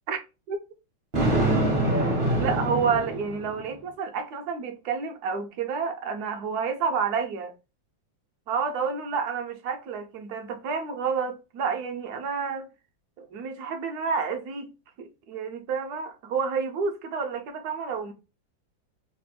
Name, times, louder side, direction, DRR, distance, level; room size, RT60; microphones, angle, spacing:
Thunder, 1.1-3.7, right 1 dB, 45° right, 0.7 m, -25 dB
voice 1, 2.4-7.5 8.5-12.7 13.2-14.7 15.0-18.1, right 5 dB, 70° right, 0.9 m, -29 dB
3.3 x 2.2 x 3.1 m
omnidirectional pair, 2.2 m